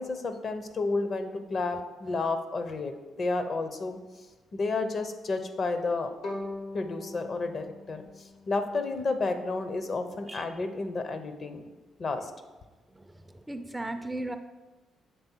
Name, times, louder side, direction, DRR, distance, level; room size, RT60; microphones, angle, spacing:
voice 1, 0.0-4.0 4.5-6.1 6.7-11.7 12.0-12.3, left 3 dB, 45° left, 8 dB, 0.6 m, -31 dB
Bowed string instrument, 6.2-9.3, left 2 dB, 85° left, 1.6 m, -41 dB
voice 2, 13.5-14.4, right 1 dB, 10° right, 8 dB, 0.4 m, -36 dB
6.8 x 3.4 x 4.4 m, 1.2 s
cardioid pair, 90°, 0 cm